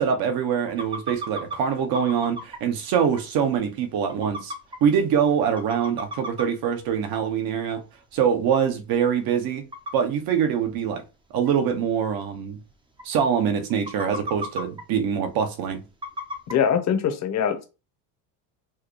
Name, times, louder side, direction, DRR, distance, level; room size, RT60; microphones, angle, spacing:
voice 1, 0.0-4.5 4.8-7.8 8.1-9.7 9.9-11.0 11.3-12.6 13.0-15.8, right 7 dB, 55° right, 0.9 m, -24 dB
sound 1, 0.7-1.6 1.9-2.6 3.2-3.3 3.5-3.6 4.1-4.8 5.3-5.4 5.6-6.4 6.9-7.0 8.1-8.2 8.6-8.7 9.7-9.9 10.7-10.8 11.4-11.5 11.8-11.9 12.1-12.2 12.7-12.8 13.0-13.3 13.7-14.8 16.0-16.5, equal, 10° right, 0.6 m, -33 dB
voice 2, 16.5-17.6, left 8 dB, 40° left, 0.8 m, -23 dB
4.6 x 2.2 x 3.0 m
cardioid pair, 125°, 44 cm